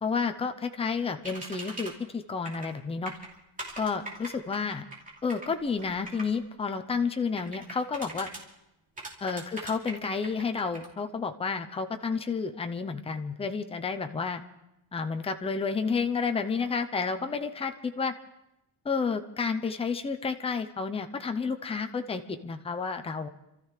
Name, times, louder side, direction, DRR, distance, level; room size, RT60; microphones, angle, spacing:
voice 1, 0.0-3.1 3.8-4.8 5.2-8.3 9.2-14.4 14.9-18.1 18.8-23.3, left 5 dB, 10° left, 7 dB, 0.6 m, -31 dB
sound 1, 1.2-1.9 2.4-2.7 3.1-6.3 7.4-8.4 9.0-10.9, right 2 dB, 15° right, 2.8 m, -41 dB
29.5 x 13.5 x 3.3 m, 0.89 s
cardioid pair, 165°, 49 cm